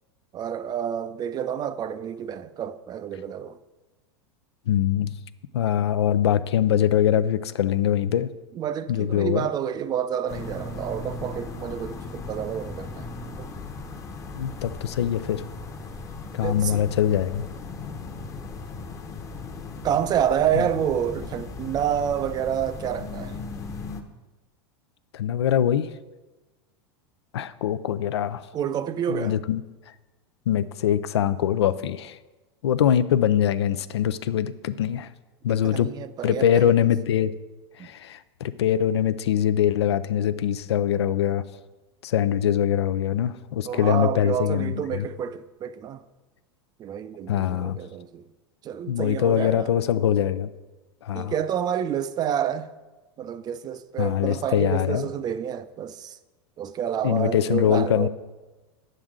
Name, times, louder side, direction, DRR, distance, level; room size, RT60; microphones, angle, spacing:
voice 1, 0.3-3.6 8.5-13.1 13.4-13.5 16.4-16.9 19.8-23.4 28.5-29.4 35.5-36.6 37.8-37.9 43.6-46.0 46.8-48.2 48.6-49.7 51.1-52.7 53.2-56.2 56.6-58.1, right 9 dB, 30° right, 0.4 m, -28 dB
voice 2, 4.7-5.1 5.5-8.3 8.9-9.5 14.3-15.5 16.3-17.5 20.6-20.7 25.1-25.9 27.3-28.4 29.1-29.6 30.5-32.2 32.6-35.1 35.4-35.9 36.2-37.3 37.8-41.4 42.0-45.1 47.3-47.8 48.9-50.5 51.0-51.3 54.0-55.1 57.0-58.1, left 10 dB, 90° left, 0.4 m, -23 dB
sound 1, 10.3-24.0, left 3 dB, 20° left, 0.8 m, -37 dB
8.9 x 7.8 x 3.7 m
hypercardioid pair, 115°, 14 cm